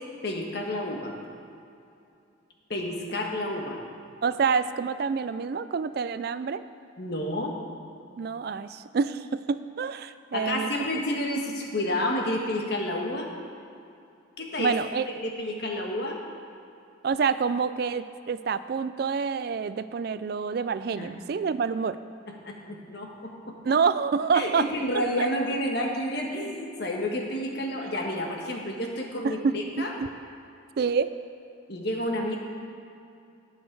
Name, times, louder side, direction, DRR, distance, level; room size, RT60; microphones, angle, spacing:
voice 1, 0.2-1.1 2.7-3.8 7.0-7.5 10.3-13.3 14.4-14.7 15.2-16.2 21.0-21.2 22.3-23.5 24.3-29.9 31.7-32.4, left 1 dB, 55° left, 1 dB, 1.4 m, -30 dB
voice 2, 4.2-6.6 8.2-10.7 14.6-15.0 17.0-22.0 23.6-24.7 25.2-25.3 27.8-27.9 29.2-30.1 30.8-31.1, right 5 dB, 50° right, 13 dB, 0.3 m, -27 dB
18.0 x 6.4 x 4.7 m, 2.7 s
head